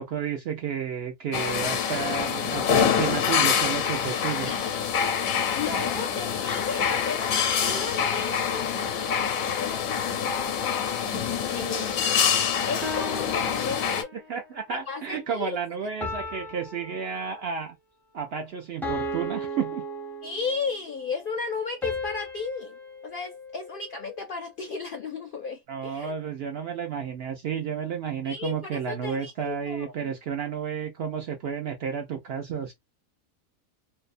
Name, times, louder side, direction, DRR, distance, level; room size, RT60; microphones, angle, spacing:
voice 1, 0.0-4.5 14.1-17.8 18.1-19.8 25.7-32.7, right 7 dB, 65° right, 0.6 m, -32 dB
sound 1, 1.3-14.0, left 7 dB, 90° left, 1.1 m, -26 dB
voice 2, 4.5-4.9 5.5-11.0 11.5-12.0 12.6-14.1 14.9-15.6 20.2-26.1 28.2-29.9, left 5 dB, 65° left, 0.5 m, -35 dB
sound 2, 12.8-14.4 16.0-17.7 18.8-20.7 21.8-24.1, left 1 dB, 5° left, 0.4 m, -36 dB
2.6 x 2.1 x 2.5 m
omnidirectional pair, 1.4 m